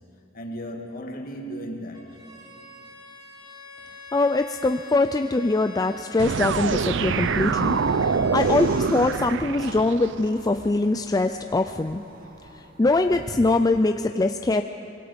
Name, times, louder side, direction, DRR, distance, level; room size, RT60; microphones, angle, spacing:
voice 1, 0.3-2.3 12.2-12.6, equal, 50° left, 1 dB, 2.5 m, -37 dB
Bowed string instrument, 1.9-8.8, left 3 dB, 25° right, 3.4 m, -45 dB
voice 2, 4.1-7.8 8.0-12.0 12.5-14.6, left 2 dB, 20° left, 7 dB, 0.4 m, -23 dB
sound 1, 6.2-10.1, right 5 dB, 70° right, 0.5 m, -24 dB
sound 2, 8.3-13.4, right 2 dB, 50° right, 1.8 m, -44 dB
25.0 x 22.5 x 5.2 m, 2.5 s
head